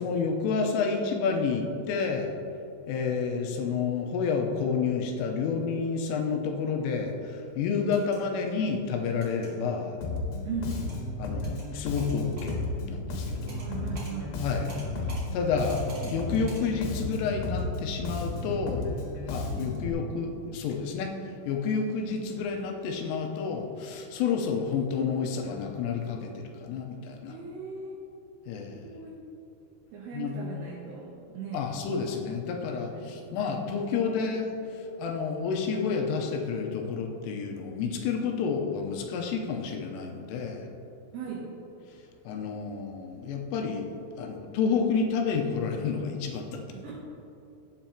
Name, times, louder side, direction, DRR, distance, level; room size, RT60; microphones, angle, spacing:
voice 1, 0.0-2.3 2.9-10.0 11.2-13.6 14.4-14.7 15.3-18.9 19.3-21.1 21.5-27.4 28.5-28.8 30.1-30.4 31.5-34.5 35.0-40.7 42.3-43.9 44.2-46.6, left 5 dB, 90° left, 2 dB, 3.3 m, -30 dB
sound 1, 7.9-8.2 9.2-9.5 10.7-11.0 11.4-11.7 12.0-12.6 13.5-13.7 13.9-14.1 14.7-15.2 15.7-16.2 16.5-16.6, right 2 dB, 30° right, 1.7 m, -47 dB
Bass guitar, 10.0-19.9, left 2 dB, 70° left, 3.0 m, -33 dB
voice 2, 10.4-10.9 13.5-14.4 27.3-28.0 28.7-29.2 29.9-31.7 32.8-33.4 41.1-41.5 46.7-47.0, right 4 dB, 75° right, -2 dB, 2.5 m, -38 dB
16.0 x 7.6 x 2.9 m, 3.0 s
omnidirectional pair, 5.8 m